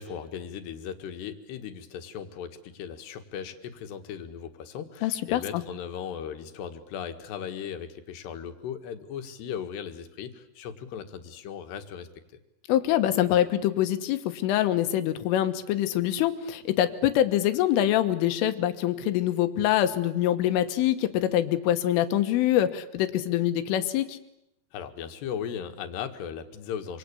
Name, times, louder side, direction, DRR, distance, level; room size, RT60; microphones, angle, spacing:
voice 1, 0.0-12.1 24.7-27.0, left 8 dB, 65° left, 7 dB, 3.5 m, -37 dB
voice 2, 5.0-5.6 12.7-24.2, left 12 dB, 90° left, 9 dB, 3.9 m, -25 dB
26.0 x 25.5 x 8.5 m, 0.82 s
omnidirectional pair, 5.6 m